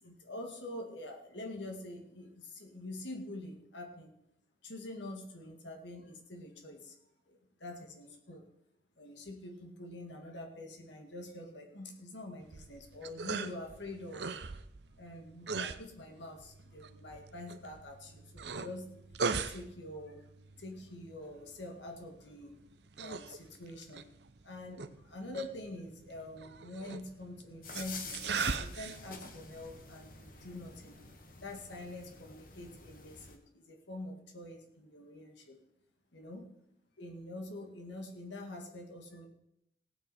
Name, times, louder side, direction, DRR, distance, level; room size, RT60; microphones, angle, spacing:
voice 1, 0.0-4.1 4.6-7.0 7.3-8.4 9.0-14.3 15.0-18.9 19.5-20.2 20.6-22.6 23.0-24.1 24.4-28.2 28.6-31.0 31.4-35.6 36.1-36.5 37.0-39.3, left 1 dB, 80° left, 3 dB, 2.2 m, -46 dB
sound 1, 12.4-31.1, right 5 dB, 70° right, 0.7 m, -41 dB
sound 2, 27.6-33.4, left 4 dB, 50° left, 1.4 m, -48 dB
17.5 x 9.2 x 4.3 m, 0.79 s
head